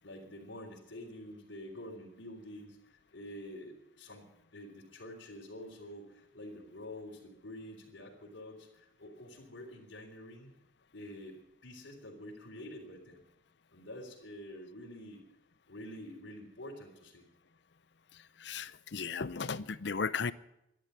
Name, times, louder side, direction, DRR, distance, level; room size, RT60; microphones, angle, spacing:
voice 1, 0.0-4.2 4.5-10.5 10.9-13.2 13.7-15.2 15.7-17.3, left 1 dB, 90° left, -2 dB, 3.7 m, -47 dB
voice 2, 18.1-20.3, left 5 dB, 70° left, 17 dB, 0.6 m, -36 dB
13.5 x 11.0 x 9.5 m, 0.86 s
head